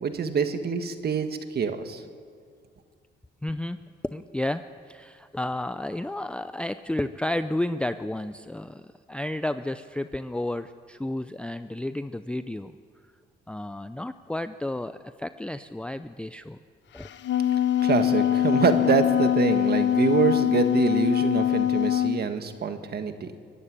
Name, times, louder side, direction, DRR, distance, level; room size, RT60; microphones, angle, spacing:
voice 1, 0.0-2.0 17.8-23.4, right 6 dB, 55° right, 8 dB, 1.7 m, -25 dB
voice 2, 3.4-3.8 4.1-12.7 13.5-16.6 16.9-17.1, left 1 dB, 5° left, 11 dB, 0.5 m, -32 dB
Wind instrument woodwind instrument, 17.0-22.2, left 11 dB, 65° left, 0.9 m, -23 dB
23.5 x 11.5 x 9.9 m, 2.2 s
cardioid pair, 90°, 20 cm